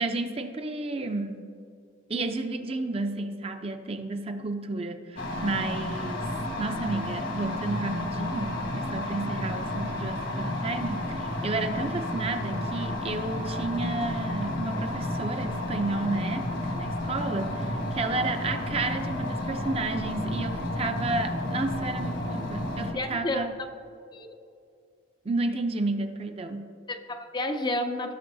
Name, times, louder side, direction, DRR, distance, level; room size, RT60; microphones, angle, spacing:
voice 1, 0.0-1.5 2.1-6.3 6.6-23.5 25.2-26.7, right 2 dB, 30° right, 7 dB, 0.5 m, -32 dB
sound 1, 5.2-22.9, left 1 dB, 70° left, 1.3 m, -31 dB
voice 2, 23.0-23.5 24.1-24.3 26.9-28.1, left 1 dB, 25° left, 6 dB, 0.4 m, -30 dB
16.0 x 6.1 x 2.7 m, 2.4 s
head